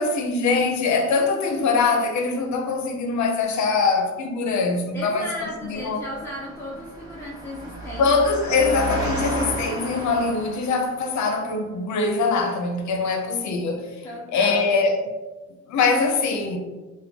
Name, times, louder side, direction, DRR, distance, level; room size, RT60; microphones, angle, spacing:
voice 1, 0.0-6.0 8.0-13.9 14.3-15.0 15.7-16.6, left 4 dB, 70° left, 0.6 m, -23 dB
voice 2, 4.9-8.1 8.5-8.8 13.0-13.2 14.0-14.8, equal, 10° left, 0.6 m, -35 dB
Engine, 5.5-11.1, right 1 dB, 10° right, 1.1 m, -33 dB
3.1 x 2.2 x 3.4 m
cardioid pair, 90°, 30 cm